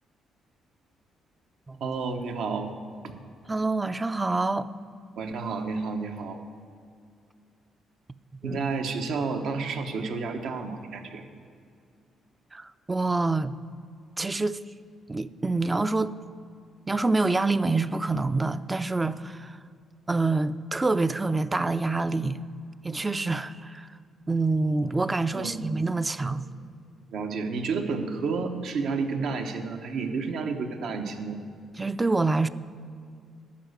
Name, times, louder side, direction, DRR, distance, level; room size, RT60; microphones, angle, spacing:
voice 1, 1.8-2.7 3.0-3.1 5.2-6.4 8.4-11.2 25.3-25.7 26.2-26.3 27.1-31.4, right 4 dB, 75° right, 1.0 m, -31 dB
voice 2, 3.5-4.7 8.4-8.6 12.5-13.5 14.2-14.6 15.1-16.1 16.9-19.6 20.1-22.4 22.8-23.9 24.3-26.4 31.8-32.5, right 3 dB, 20° right, 0.4 m, -26 dB
11.5 x 5.7 x 8.1 m
cardioid pair, 90°, 0 cm